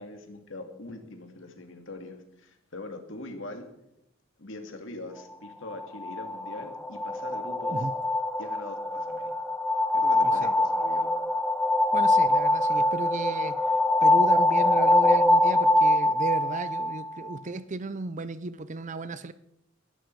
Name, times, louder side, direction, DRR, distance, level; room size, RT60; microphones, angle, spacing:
voice 1, 0.0-3.7 4.4-7.9 8.4-9.3 9.9-11.1, left 2 dB, 65° left, 5 dB, 2.4 m, -42 dB
sound 1, 5.7-17.4, left 1 dB, 5° left, 0.6 m, -24 dB
voice 2, 11.9-13.6 14.0-19.3, right 3 dB, 35° right, 14 dB, 0.6 m, -34 dB
21.0 x 12.0 x 4.7 m, 0.83 s
head